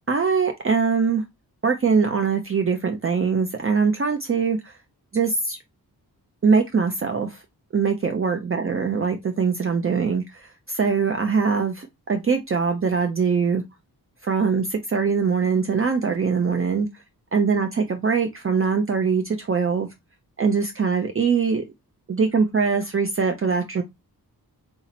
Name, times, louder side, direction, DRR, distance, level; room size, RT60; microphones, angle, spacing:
voice 1, 0.1-1.2 1.6-4.6 5.1-5.6 6.4-7.4 7.7-10.2 10.7-13.6 14.2-16.9 17.3-19.9 20.4-21.6 22.1-23.8, right 5 dB, 35° right, 0.5 m, -22 dB
4.0 x 2.0 x 4.2 m
wide cardioid pair, 140°, 38 cm